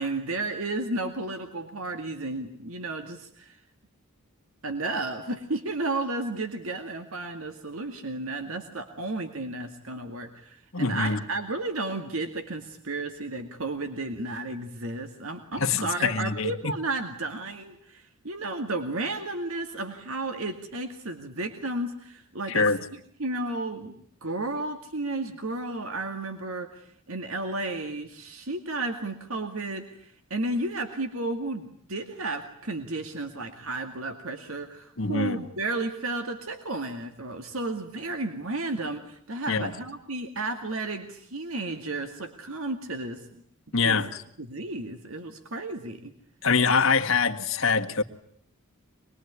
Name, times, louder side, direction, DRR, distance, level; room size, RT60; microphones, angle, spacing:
voice 1, 0.0-3.6 4.6-24.0 24.2-43.4 43.8-44.0 44.4-46.1, right 2 dB, 75° right, 2.2 m, -33 dB
voice 2, 10.7-11.2 15.6-16.7 22.5-22.8 35.0-35.4 39.5-39.7 43.7-44.2 46.4-48.0, left 5 dB, 65° left, 1.7 m, -24 dB
25.5 x 21.5 x 9.7 m
head